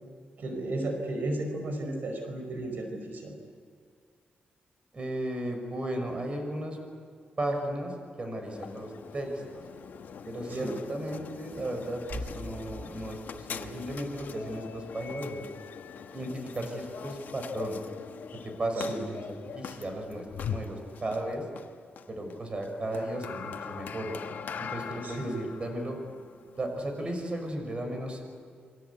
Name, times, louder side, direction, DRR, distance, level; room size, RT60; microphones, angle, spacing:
voice 1, 0.4-3.3 10.5-10.7 18.8-19.0 25.0-25.4, right 1 dB, 70° right, 4 dB, 4.9 m, -34 dB
voice 2, 4.9-6.8 7.4-9.6 10.3-15.5 16.1-17.8 18.3-21.4 22.1-24.2 24.6-26.0 26.6-28.2, right 1 dB, 35° right, 4 dB, 5.6 m, -35 dB
sound 1, 8.5-27.5, left 7 dB, 70° left, 1.3 m, -42 dB
28.0 x 23.5 x 8.4 m, 2.1 s
wide cardioid pair, 120°, 3 cm